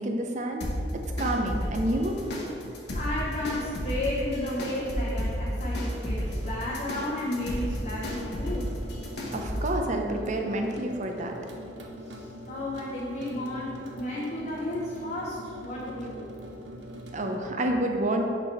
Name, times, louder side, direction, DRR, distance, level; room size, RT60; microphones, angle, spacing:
voice 1, 0.0-2.2 9.3-11.3 17.1-18.3, right 1 dB, 45° right, 3 dB, 0.7 m, -29 dB
sound 1, 0.6-9.8, equal, 65° left, 1.1 m, -32 dB
sound 2, 1.4-17.4, right 1 dB, 90° right, 0.8 m, -44 dB
voice 2, 2.9-8.7 12.1-16.3, left 1 dB, 45° left, -6 dB, 0.9 m, -33 dB
5.1 x 4.8 x 5.4 m, 2.7 s
head